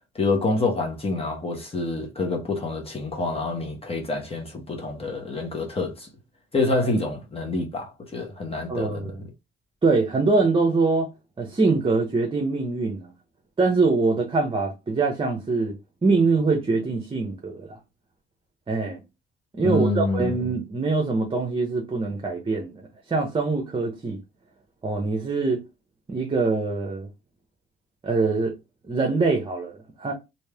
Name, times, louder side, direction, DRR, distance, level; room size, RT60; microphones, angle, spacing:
voice 1, 0.1-6.1 6.5-9.3 19.6-20.4, left 2 dB, 30° left, 1.1 m, -27 dB
voice 2, 8.7-9.2 9.8-11.1 11.4-13.1 13.6-17.8 18.7-19.0 19.5-24.2 24.8-25.6 26.1-27.1 28.0-28.5 28.8-30.1, right 3 dB, 25° right, 0.9 m, -24 dB
3.2 x 2.7 x 3.4 m
cardioid pair, 90°, 20 cm